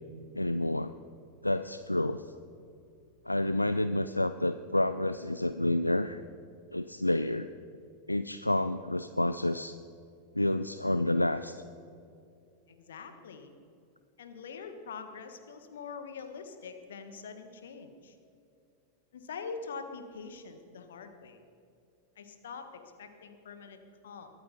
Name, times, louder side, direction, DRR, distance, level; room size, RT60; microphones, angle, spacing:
voice 1, 0.3-0.9 1.4-2.3 3.3-6.2 6.7-7.5 8.1-9.8 10.3-11.6, left 1 dB, 85° left, 12 dB, 0.3 m, -29 dB
voice 2, 12.7-13.5 14.2-18.1 19.1-21.4 22.2-22.7 23.0-23.8 24.0-24.3, left 5 dB, 60° left, 7 dB, 1.5 m, -44 dB
22.5 x 8.8 x 5.4 m, 2.6 s
figure-of-eight pair, 90°, 0 cm